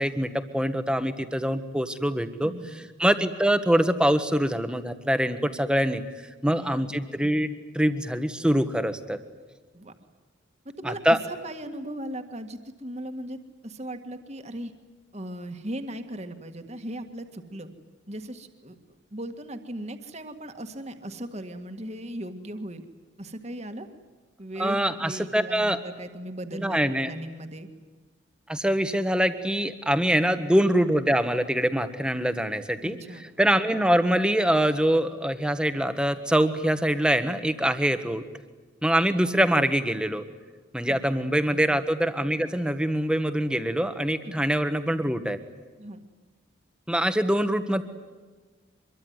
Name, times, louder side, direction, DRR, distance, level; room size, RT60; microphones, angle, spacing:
voice 1, 0.0-9.2 10.8-11.2 24.6-25.8 26.5-27.1 28.5-33.0 33.4-38.2 38.8-40.2 40.7-45.4 46.9-47.8, equal, 5° right, 9 dB, 1.4 m, -24 dB
voice 2, 2.4-2.9 6.4-6.9 9.7-9.9 10.7-11.0 11.3-13.4 13.6-14.7 15.1-17.7 18.1-18.8 19.1-22.8 23.2-23.9 24.4-26.8 27.0-27.7 30.1-30.4 32.8-33.2 40.9-41.0 41.5-41.7 44.2-44.4 45.8-46.0, right 1 dB, 35° right, 6 dB, 1.9 m, -38 dB
25.0 x 23.0 x 9.6 m, 1.3 s
head